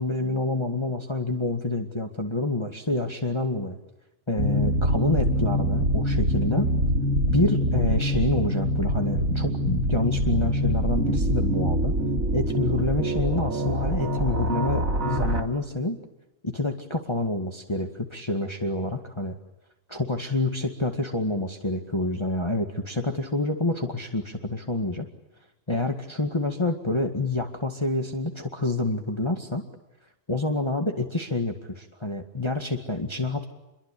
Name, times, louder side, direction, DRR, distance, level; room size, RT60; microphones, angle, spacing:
voice 1, 0.0-3.8 4.3-6.7 7.3-12.0 12.3-16.0 16.4-19.3 19.9-25.1 25.7-29.6 30.3-33.4, left 2 dB, 20° left, 3 dB, 2.0 m, -27 dB
sound 1, 4.4-15.4, equal, 80° right, 3.8 m, -24 dB
28.5 x 23.0 x 8.6 m, 0.93 s
omnidirectional pair, 1.4 m